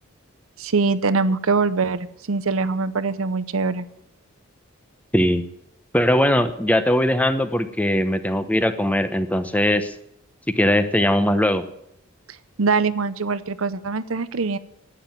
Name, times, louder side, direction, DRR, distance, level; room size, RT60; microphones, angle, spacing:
voice 1, 0.6-3.9 12.6-14.6, right 4 dB, 75° right, 14 dB, 0.7 m, -23 dB
voice 2, 5.9-9.9 10.6-11.6, left 1 dB, 5° left, 10 dB, 0.8 m, -20 dB
11.5 x 9.5 x 9.5 m, 0.78 s
head